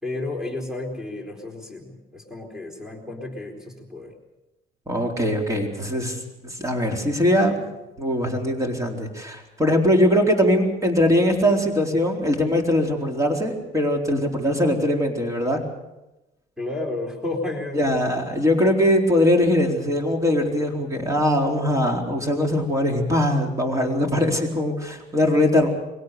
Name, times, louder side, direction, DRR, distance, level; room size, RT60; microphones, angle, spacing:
voice 1, 0.0-4.1 16.6-17.8, left 2 dB, 5° right, 2 dB, 4.3 m, -32 dB
voice 2, 4.9-7.5 8.0-15.6 17.7-25.7, left 1 dB, 20° right, 2 dB, 4.2 m, -21 dB
23.5 x 17.5 x 6.9 m, 0.99 s
cardioid pair, 110°, 17 cm